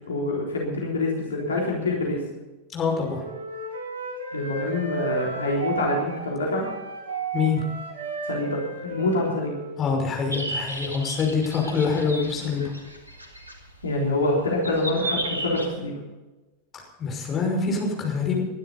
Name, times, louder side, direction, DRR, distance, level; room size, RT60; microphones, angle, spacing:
voice 1, 0.1-2.2 4.3-6.7 8.2-9.6 13.8-16.0, left 2 dB, 70° left, -2 dB, 3.6 m, -26 dB
voice 2, 2.7-3.2 7.3-7.6 9.8-12.7 17.0-18.4, left 5 dB, 25° left, 0 dB, 5.8 m, -25 dB
Wind instrument woodwind instrument, 2.8-10.2, right 4 dB, 65° right, 6.5 m, -34 dB
sound 1, 10.3-15.7, right 1 dB, 80° right, 2.6 m, -34 dB
21.5 x 12.0 x 4.1 m, 1.1 s
figure-of-eight pair, 90°, 0 cm